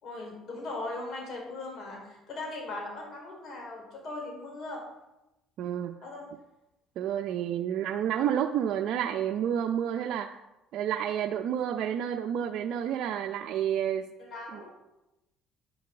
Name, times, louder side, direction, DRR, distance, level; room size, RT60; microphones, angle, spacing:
voice 1, 0.0-4.8 6.0-6.3 14.2-14.7, left 2 dB, 50° left, 0 dB, 4.6 m, -39 dB
voice 2, 5.6-6.0 7.0-10.4 10.7-14.1 14.5-14.6, right 9 dB, 65° right, 3 dB, 0.6 m, -30 dB
9.9 x 7.2 x 7.7 m, 0.94 s
cardioid pair, 115°, 0 cm